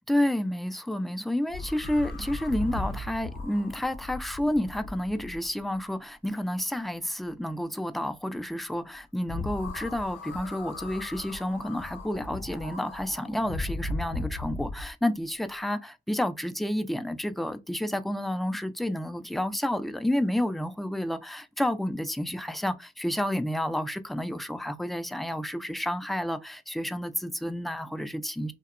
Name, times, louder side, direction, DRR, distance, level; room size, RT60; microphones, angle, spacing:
voice 1, 0.1-28.5, left 1 dB, ahead, 0.3 m, -30 dB
sound 1, 1.5-5.8 9.3-14.9, left 2 dB, 90° left, 0.6 m, -37 dB
2.7 x 2.0 x 2.4 m
supercardioid pair, 60°, 19 cm